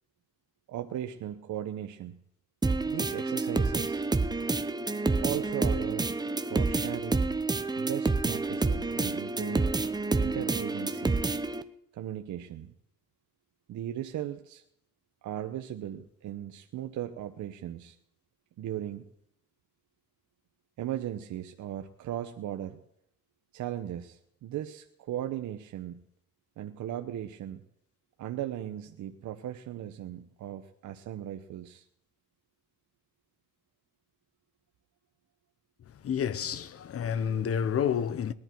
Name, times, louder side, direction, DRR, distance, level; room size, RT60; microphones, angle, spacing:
voice 1, 0.7-2.2 2.8-4.0 5.2-7.3 7.8-9.7 10.2-11.2 11.9-12.7 13.7-14.6 15.2-18.0 18.6-19.1 20.8-22.8 23.5-26.0 26.6-27.6 28.2-31.8, right 11 dB, 75° right, 0.9 m, -37 dB
sound 1, 2.6-11.6, right 3 dB, 15° right, 0.8 m, -28 dB
voice 2, 36.0-38.3, left 8 dB, 50° left, 0.8 m, -29 dB
20.0 x 11.0 x 4.6 m
cardioid pair, 90°, 30 cm